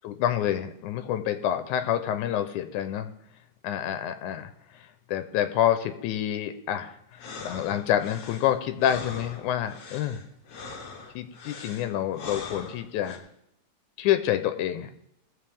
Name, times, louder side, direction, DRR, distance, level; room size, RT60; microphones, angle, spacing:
voice 1, 0.0-3.1 3.6-10.2 11.2-13.3 14.0-14.9, left 11 dB, 90° left, 9 dB, 2.2 m, -28 dB
sound 1, 7.1-13.2, left 4 dB, 60° left, 2.4 m, -42 dB
20.5 x 7.4 x 3.5 m, 0.76 s
omnidirectional pair, 3.4 m